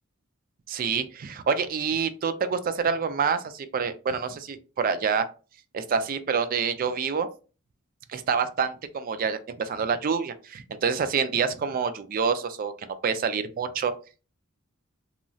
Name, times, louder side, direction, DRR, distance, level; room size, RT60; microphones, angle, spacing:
voice 1, 0.7-5.3 5.7-7.3 8.1-12.7 13.0-13.9, right 6 dB, 40° right, 11 dB, 0.3 m, -27 dB
3.0 x 2.6 x 2.3 m, 0.34 s
head